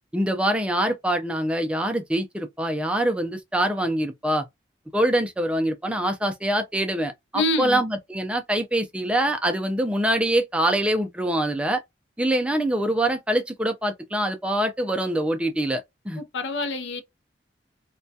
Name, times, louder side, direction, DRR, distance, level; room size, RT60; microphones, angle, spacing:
voice 1, 0.1-4.5 4.9-11.8 12.2-16.2, right 1 dB, 5° right, 0.4 m, -24 dB
voice 2, 7.3-7.8 16.2-17.0, left 2 dB, 80° left, 0.5 m, -26 dB
2.2 x 2.2 x 2.6 m
head